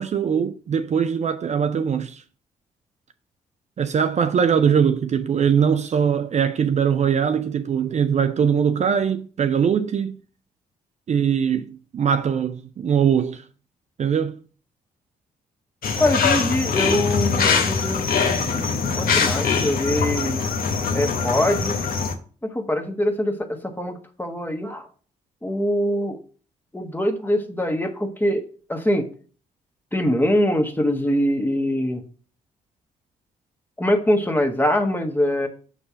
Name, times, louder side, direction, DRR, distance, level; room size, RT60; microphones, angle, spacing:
voice 1, 0.0-2.2 3.8-10.2 11.1-13.4 14.0-14.4, right 7 dB, 45° right, 0.5 m, -21 dB
sound 1, 15.8-22.1, left 5 dB, 60° left, 1.0 m, -22 dB
voice 2, 16.0-20.4 20.9-21.8 22.4-24.9 25.4-26.2 26.7-29.1 29.9-32.0 33.8-35.5, left 1 dB, 10° left, 1.3 m, -23 dB
6.0 x 3.3 x 5.5 m
hypercardioid pair, 50°, 17 cm